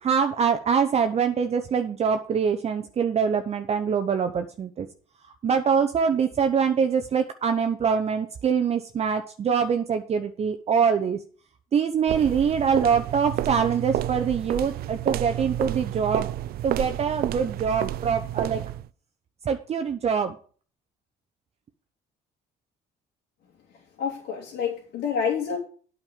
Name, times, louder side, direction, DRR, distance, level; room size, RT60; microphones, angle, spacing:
voice 1, 0.0-4.9 5.4-11.2 11.7-16.3 16.6-18.6 19.4-20.4, right 6 dB, 40° right, 7 dB, 0.8 m, -24 dB
sound 1, 12.1-18.9, right 13 dB, 65° right, 0.4 m, -30 dB
voice 2, 24.0-25.6, left 7 dB, 75° left, -4 dB, 2.9 m, -28 dB
8.9 x 5.2 x 7.4 m, 0.42 s
cardioid pair, 110°, 17 cm